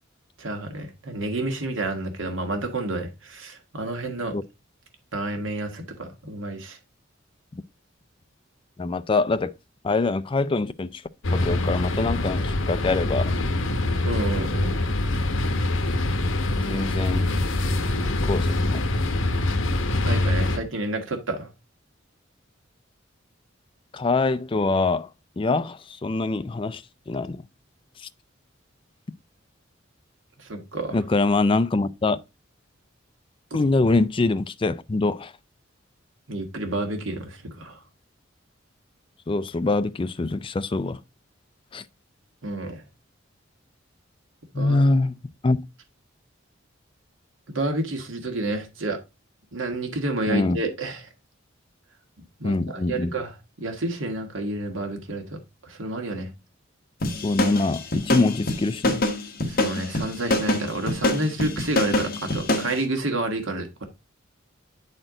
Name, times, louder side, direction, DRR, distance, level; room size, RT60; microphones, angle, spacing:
voice 1, 0.4-4.3 5.1-6.8 14.0-14.8 20.0-21.5 30.4-31.0 36.3-37.8 42.4-42.8 44.5-44.8 47.5-49.0 49.5-51.0 52.4-56.3 59.4-63.8, right 2 dB, 75° right, 1.8 m, -30 dB
voice 2, 8.8-9.5 9.8-11.0 11.3-13.3 16.6-17.3 18.1-18.9 23.9-25.1 25.4-27.4 30.9-32.2 33.5-35.3 39.3-41.0 41.7-41.8 44.5-45.2 45.4-45.6 50.3-50.6 52.4-53.1 57.2-59.0, left 3 dB, 25° left, 0.4 m, -24 dB
sound 1, 11.2-20.6, left 2 dB, 75° left, 0.9 m, -24 dB
sound 2, 57.0-62.7, left 1 dB, 50° left, 1.3 m, -25 dB
8.8 x 4.4 x 3.8 m
head